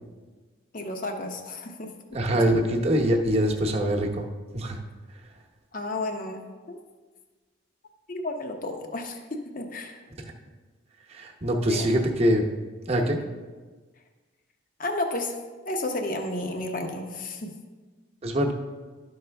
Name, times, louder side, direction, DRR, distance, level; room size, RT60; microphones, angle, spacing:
voice 1, 0.7-1.9 2.5-2.6 5.7-6.4 6.7-6.8 8.1-9.2 9.5-10.0 11.7-11.9 14.8-15.4 15.6-17.5, left 2 dB, 45° left, 4 dB, 0.8 m, -32 dB
voice 2, 2.1-4.3 4.5-4.8 11.1-12.5 12.9-13.2 18.2-18.5, equal, 30° right, 1 dB, 0.8 m, -24 dB
12.0 x 5.5 x 3.4 m, 1.4 s
head